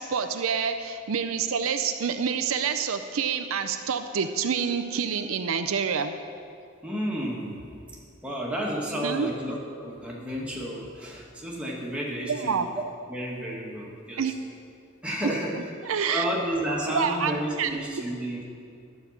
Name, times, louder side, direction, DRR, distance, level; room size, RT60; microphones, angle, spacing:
voice 1, 0.0-6.1 9.0-9.3 12.3-12.7 14.2-14.3 15.8-16.2 16.9-18.0, right 6 dB, 80° right, 8 dB, 0.5 m, -27 dB
voice 2, 6.8-7.6 8.2-12.7 13.1-14.2 15.0-15.6 16.1-18.4, equal, 5° right, -4 dB, 1.5 m, -31 dB
11.5 x 5.3 x 7.2 m, 2.4 s
head